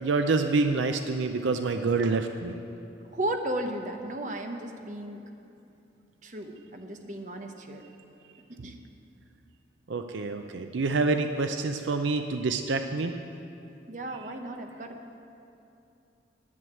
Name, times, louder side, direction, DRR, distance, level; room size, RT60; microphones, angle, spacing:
voice 1, 0.0-2.6 9.9-13.1, right 3 dB, 75° right, 7 dB, 0.5 m, -27 dB
voice 2, 3.1-5.2 6.2-7.8 8.5-8.8 13.9-15.0, right 1 dB, 40° right, 4 dB, 0.9 m, -35 dB
11.0 x 7.9 x 9.1 m, 2.8 s
head